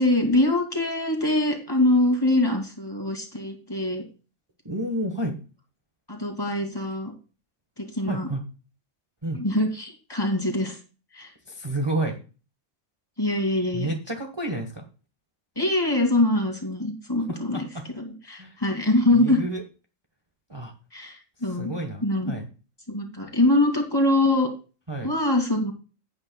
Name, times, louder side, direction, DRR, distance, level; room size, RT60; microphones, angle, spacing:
voice 1, 0.0-4.0 6.1-7.1 7.8-8.3 9.3-10.8 11.1-11.3 13.2-13.9 15.6-17.6 18.0-19.4 20.9-21.7 22.0-22.3 22.9-24.5 25.0-25.7, left 1 dB, 20° left, 2 dB, 2.5 m, -23 dB
voice 2, 4.6-5.4 8.1-8.4 9.2-9.4 11.5-12.2 13.7-14.8 17.3-17.8 18.4-18.6 19.1-19.6 20.5-20.7 21.6-22.5 24.9-25.1, right 1 dB, 20° right, 3 dB, 1.3 m, -30 dB
16.0 x 8.7 x 2.3 m, 0.34 s
omnidirectional pair, 1.3 m